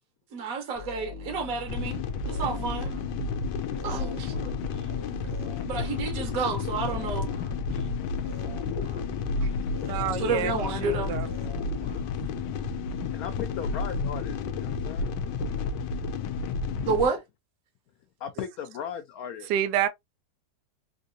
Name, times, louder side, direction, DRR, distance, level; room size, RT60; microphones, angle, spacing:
voice 1, 0.3-2.0 2.3-2.9 3.8-4.5 5.6-7.3 10.2-11.1 16.8-17.2, right 4 dB, 60° right, 1.2 m, -30 dB
sound 1, 0.7-13.0, left 4 dB, 25° right, 0.7 m, -41 dB
sound 2, 1.7-17.1, left 4 dB, 85° left, 1.2 m, -31 dB
voice 2, 9.8-11.3 19.5-19.9, right 10 dB, 80° right, 1.2 m, -29 dB
voice 3, 13.1-15.1 18.2-19.5, left 8 dB, 70° left, 0.9 m, -37 dB
3.8 x 2.6 x 2.5 m
omnidirectional pair, 1.9 m